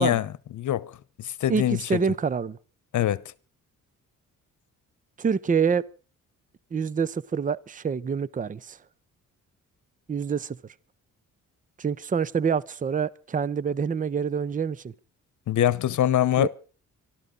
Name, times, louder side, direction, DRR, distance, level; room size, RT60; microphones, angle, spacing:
voice 1, 0.0-2.0 2.9-3.2 15.5-16.5, left 12 dB, 65° left, 1.0 m, -24 dB
voice 2, 1.5-2.6 5.2-5.8 6.7-8.8 10.1-10.6 11.8-14.9 16.4-16.5, right 6 dB, 25° right, 0.7 m, -26 dB
26.5 x 12.5 x 3.9 m
cardioid pair, 120°, 32 cm